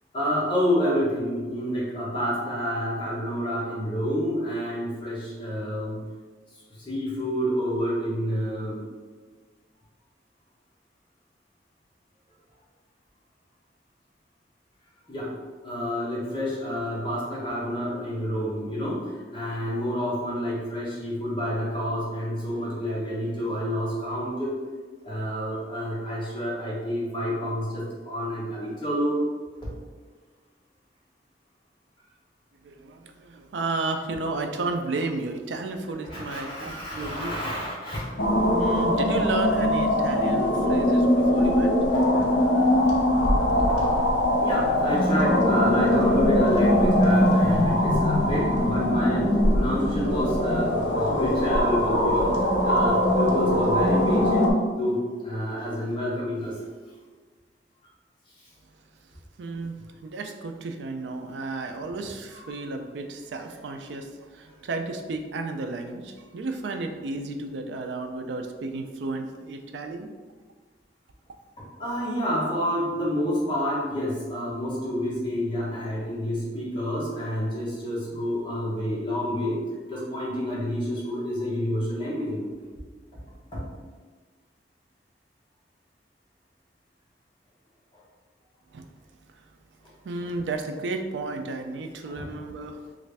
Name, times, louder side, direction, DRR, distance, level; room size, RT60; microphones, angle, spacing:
voice 1, 0.1-6.1 6.8-8.8 15.1-15.3 15.6-24.5 25.0-29.2 29.6-29.7 36.1-38.1 41.3-41.4 41.9-42.4 42.8-43.1 43.4-43.9 44.4-52.3 52.6-54.5 54.8-56.6 62.3-62.5 71.6-79.6 79.9-82.5 83.5-83.6 92.0-92.2, equal, 25° left, -7 dB, 0.9 m, -29 dB
voice 2, 32.6-37.3 38.5-41.8 59.4-59.7 60.0-70.1 88.7-88.9 90.0-92.8, right 3 dB, 85° right, 5 dB, 0.4 m, -33 dB
sound 1, 38.2-54.5, left 1 dB, 75° left, 0.5 m, -21 dB
3.2 x 2.5 x 3.3 m, 1.4 s
head